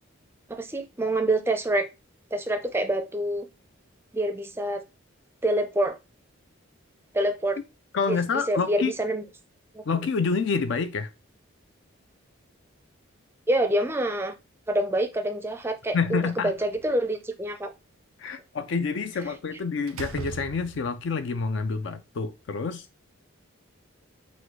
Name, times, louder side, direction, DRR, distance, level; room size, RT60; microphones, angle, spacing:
voice 1, 0.5-1.9 2.3-3.5 4.1-4.8 5.4-6.0 7.1-7.6 8.1-8.2 8.5-9.2 9.7-9.8 13.5-14.3 14.7-17.7, right 1 dB, 10° right, 0.4 m, -26 dB
voice 2, 7.9-8.9 9.9-11.1 15.9-16.5 18.2-22.9, left 5 dB, 60° left, 0.4 m, -28 dB
Slam, 16.0-17.1 19.2-19.4 19.9-21.1, right 4 dB, 85° right, 0.4 m, -39 dB
4.2 x 2.2 x 4.5 m
head